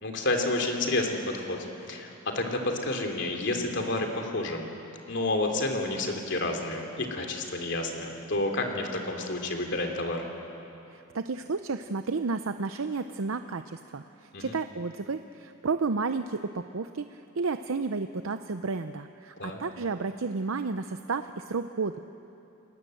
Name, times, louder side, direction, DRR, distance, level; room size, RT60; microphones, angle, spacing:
voice 1, 0.0-1.6 1.9-4.6 5.1-10.2 14.3-14.5 19.4-19.6, left 2 dB, 55° left, 3 dB, 3.1 m, -30 dB
voice 2, 10.9-22.0, right 4 dB, 80° right, 9 dB, 0.6 m, -32 dB
29.5 x 20.0 x 7.9 m, 2.8 s
head